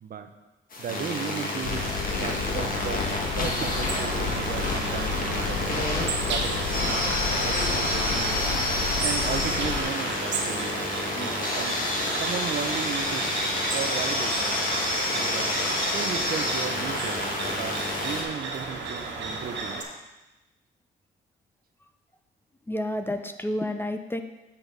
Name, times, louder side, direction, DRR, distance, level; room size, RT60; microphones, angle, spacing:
sound 1, 0.7-18.2, left 1 dB, 45° left, 1.7 m, -29 dB
voice 1, 0.8-1.9 2.2-7.0 7.4-8.7 9.0-11.8 12.2-13.3 13.7-14.5 15.1-15.5 15.9-19.8, right 7 dB, 50° right, 8 dB, 0.7 m, -36 dB
sound 2, 1.6-9.8, left 5 dB, 65° left, 1.1 m, -32 dB
sound 3, 3.7-19.8, right 4 dB, 65° right, 1.5 m, -34 dB
voice 2, 22.7-24.2, left 1 dB, 10° left, 7 dB, 0.5 m, -30 dB
8.1 x 4.4 x 5.3 m, 1.0 s
cardioid pair, 90°, 20 cm